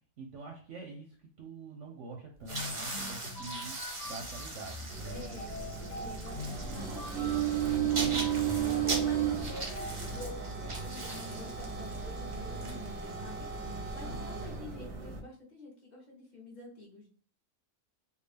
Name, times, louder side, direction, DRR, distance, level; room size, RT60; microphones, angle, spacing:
voice 1, 0.2-3.8 4.0-5.2 7.8-8.9 13.9-14.3, right 2 dB, 65° right, 2 dB, 0.8 m, -45 dB
sound 1, 2.4-13.4, right 2 dB, 40° right, 0.4 m, -41 dB
sound 2, 2.5-10.4, left 2 dB, 70° left, 0.4 m, -44 dB
sound 3, 4.9-15.2, right 9 dB, 90° right, 1.2 m, -34 dB
voice 2, 5.1-5.7 5.9-7.8 8.6-17.1, left 2 dB, 30° left, -2 dB, 1.1 m, -48 dB
3.6 x 2.3 x 3.3 m, 0.43 s
omnidirectional pair, 1.7 m